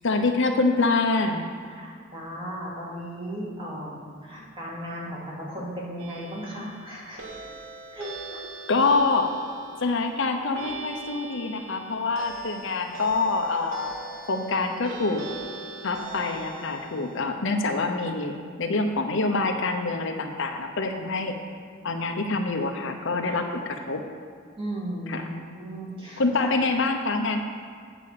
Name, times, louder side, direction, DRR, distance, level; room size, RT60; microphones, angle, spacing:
voice 1, 0.0-1.5 8.7-9.3 9.8-13.9 14.3-15.3 15.8-21.3 21.8-24.0 25.1-25.2 26.2-27.4, left 3 dB, 65° left, 5 dB, 0.8 m, -25 dB
voice 2, 1.7-7.2 7.9-8.5 24.6-26.5, equal, 25° right, -5 dB, 2.2 m, -36 dB
sound 1, 6.0-17.2, right 3 dB, 75° right, 1.6 m, -42 dB
8.6 x 6.0 x 6.7 m, 2.1 s
head